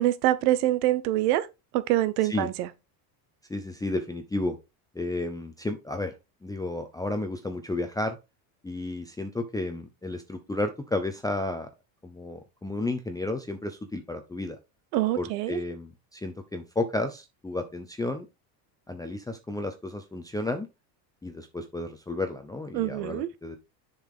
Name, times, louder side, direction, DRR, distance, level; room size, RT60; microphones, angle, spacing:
voice 1, 0.0-1.5 1.7-2.7 14.9-15.6 22.7-23.3, right 14 dB, 75° right, 1.1 m, -25 dB
voice 2, 3.5-4.6 4.9-6.2 6.4-8.2 8.6-11.7 12.0-14.6 15.2-18.3 18.9-20.7 21.2-23.6, left 2 dB, 5° left, 0.7 m, -32 dB
7.3 x 5.8 x 3.6 m
supercardioid pair, 115°, 49 cm